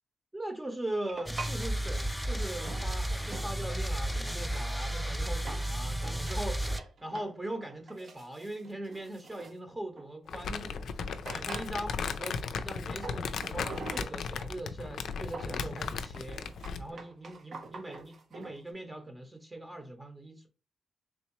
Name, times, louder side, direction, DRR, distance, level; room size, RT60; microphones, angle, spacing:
voice 1, 0.3-10.8 11.3-16.4 16.8-20.5, right 1 dB, 20° right, 0.8 m, -40 dB
sound 1, 1.0-1.6 2.6-3.6 3.9-10.5 10.9-11.0 11.3-12.1 12.9-14.5 14.8-18.6, right 3 dB, 65° right, 0.8 m, -46 dB
sound 2, 1.3-6.8, right 1 dB, ahead, 0.4 m, -33 dB
Crumpling crinkling, 10.3-16.9, left 5 dB, 75° left, 0.3 m, -36 dB
3.6 x 3.0 x 3.0 m
cardioid pair, 65°, 0 cm